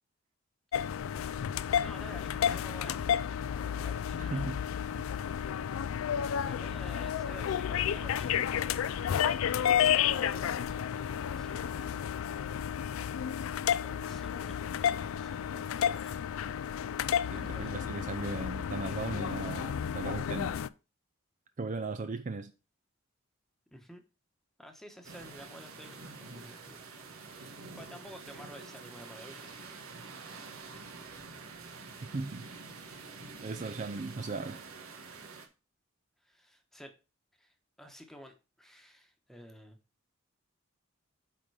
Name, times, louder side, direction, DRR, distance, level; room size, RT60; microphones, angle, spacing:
sound 1, 0.7-20.7, left 9 dB, 75° left, 0.3 m, -31 dB
voice 1, 1.8-4.6 6.2-9.5 9.9-12.0 13.8-16.1 17.5-17.7 23.7-24.0 24.6-29.7 36.2-36.9 37.3-39.8, equal, ahead, 1.1 m, -52 dB
voice 2, 4.2-4.6 5.0-5.1 17.3-20.6 21.6-22.5 32.0-32.5 33.4-34.6, right 3 dB, 35° right, 0.4 m, -37 dB
sound 2, 25.0-35.5, right 4 dB, 90° right, 1.4 m, -47 dB
8.8 x 3.8 x 4.8 m
head